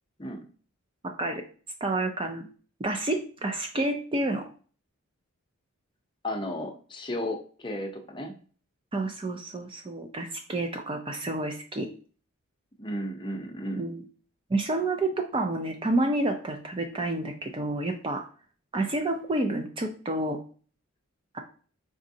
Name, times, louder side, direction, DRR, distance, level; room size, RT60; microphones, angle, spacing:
voice 1, 1.0-1.4 1.8-2.5 2.8-4.5 8.9-11.9 13.8-14.0 14.5-18.3 18.7-20.4 21.3-21.4, right 2 dB, 25° right, 4 dB, 0.4 m, -29 dB
voice 2, 6.2-8.3 12.8-13.9, left 1 dB, 20° left, 2 dB, 0.7 m, -34 dB
5.0 x 3.5 x 2.7 m, 0.40 s
head